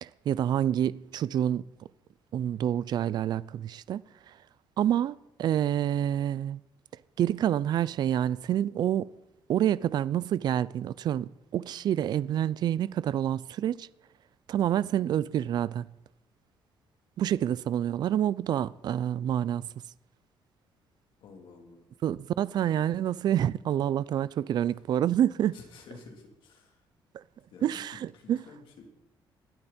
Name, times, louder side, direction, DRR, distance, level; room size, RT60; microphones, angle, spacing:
voice 1, 0.0-1.6 2.3-4.0 4.3-4.4 4.8-6.6 7.2-9.1 9.5-13.9 14.5-15.9 17.2-19.7 22.0-25.5 27.1-27.2 27.6-28.4, right 10 dB, 55° right, 0.4 m, -28 dB
voice 2, 21.2-21.8 25.5-26.8 27.5-28.9, left 4 dB, 70° left, 3.4 m, -51 dB
20.5 x 12.5 x 4.4 m
cardioid pair, 150°, 9 cm